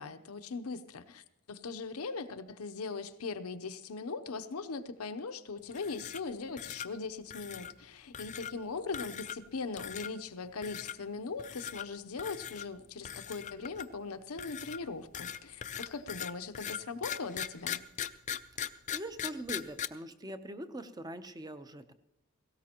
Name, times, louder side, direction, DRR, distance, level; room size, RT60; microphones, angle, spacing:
voice 1, 0.0-17.9, left 4 dB, 90° left, 10 dB, 0.7 m, -40 dB
sound 1, 5.7-6.3 6.6-6.9 7.3-7.7 8.1-8.5 8.9-9.5 9.8-10.1 10.6-10.9 11.4-11.9 12.2-12.7 13.0-14.0 14.4-19.9, left 9 dB, 35° left, 0.4 m, -40 dB
voice 2, 18.6-21.9, right 1 dB, 20° right, 10 dB, 0.7 m, -42 dB
18.0 x 16.5 x 2.9 m, 0.85 s
head